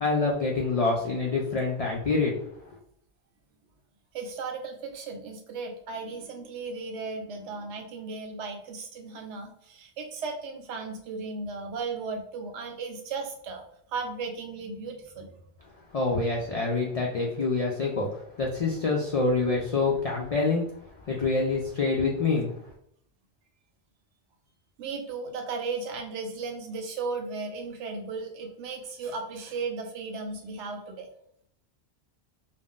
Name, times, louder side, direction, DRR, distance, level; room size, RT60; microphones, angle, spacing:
voice 1, 0.0-2.3 15.9-18.1 18.4-20.6 21.1-22.5, left 3 dB, 70° left, -2 dB, 0.3 m, -26 dB
voice 2, 4.1-13.6 13.9-15.3 24.8-31.1, right 4 dB, 85° right, 4 dB, 0.9 m, -36 dB
2.4 x 2.1 x 3.6 m, 0.68 s
omnidirectional pair, 1.1 m